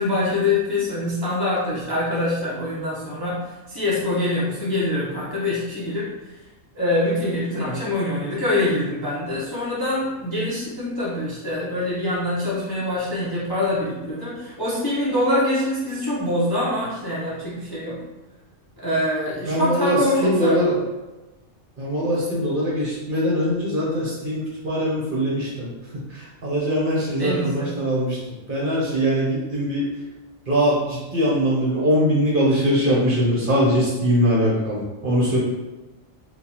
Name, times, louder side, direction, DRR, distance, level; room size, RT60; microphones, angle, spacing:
voice 1, 0.0-6.3 6.7-18.0 18.8-20.6 27.2-27.7, left 1 dB, 20° left, -9 dB, 0.6 m, -24 dB
voice 2, 19.5-20.8 21.8-28.2 28.5-29.9 30.5-35.4, equal, 45° right, -6 dB, 0.9 m, -22 dB
3.8 x 2.5 x 2.9 m, 1.1 s
omnidirectional pair, 1.4 m